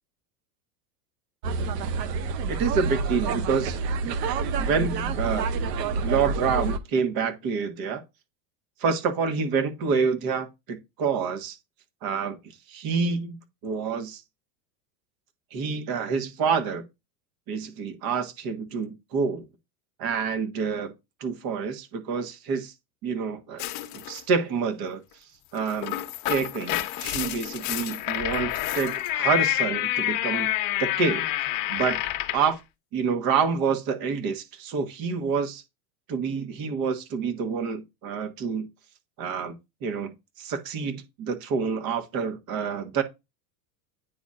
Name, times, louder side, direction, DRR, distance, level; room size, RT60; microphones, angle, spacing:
sound 1, 1.4-6.8, right 4 dB, 85° right, 0.9 m, -28 dB
voice 1, 2.5-4.1 4.6-5.5 6.0-8.0 8.8-11.6 12.0-12.4 12.7-14.2 15.5-16.8 17.5-19.4 20.0-20.9 21.2-22.7 23.0-23.6 23.9-25.0 25.5-26.0 26.3-30.5 30.8-31.3 31.7-32.0 32.3-32.6 32.9-35.6 36.1-38.7 39.2-39.5 39.8-43.0, right 5 dB, 50° right, 1.5 m, -27 dB
sound 2, 23.6-24.2 25.6-32.5, left 14 dB, 45° left, 0.9 m, -28 dB
9.4 x 4.2 x 2.5 m
supercardioid pair, 110°, 47 cm